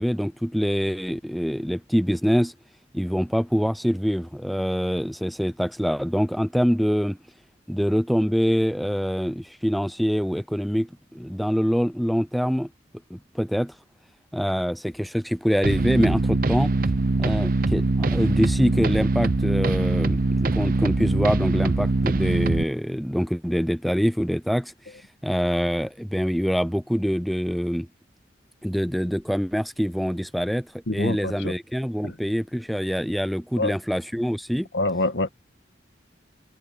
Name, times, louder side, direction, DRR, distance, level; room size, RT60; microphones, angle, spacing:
voice 1, 0.0-2.5 2.9-7.2 7.7-12.7 13.1-13.7 14.3-16.7 17.2-24.7 25.2-27.9 28.6-34.7, equal, ahead, 0.5 m, -25 dB
sound 1, 15.6-22.6, right 2 dB, 50° right, 0.7 m, -23 dB
voice 2, 30.9-31.5 32.0-32.1 33.6-33.7 34.7-35.3, left 2 dB, 85° left, 1.8 m, -26 dB
head